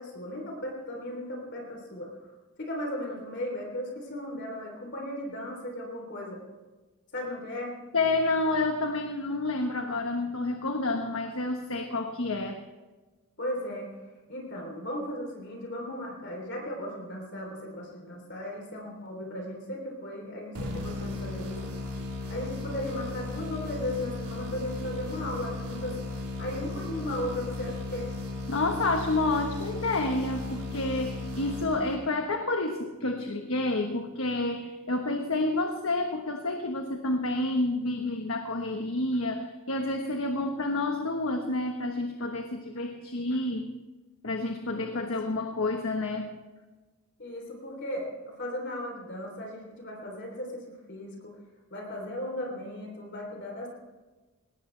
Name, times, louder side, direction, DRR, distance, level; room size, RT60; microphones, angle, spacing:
voice 1, 0.0-2.1 2.6-6.4 7.1-7.8 13.4-13.9 14.3-21.8 22.3-26.0 26.4-28.1 44.7-45.1 47.2-51.4 51.7-53.7, left 1 dB, 50° left, 1 dB, 3.4 m, -36 dB
voice 2, 7.9-12.6 28.5-43.7 44.2-46.3, left 2 dB, 70° left, 4 dB, 1.3 m, -29 dB
sound 1, 20.5-32.3, left 2 dB, 90° right, 3.9 m, -36 dB
20.5 x 18.5 x 3.4 m, 1.2 s
head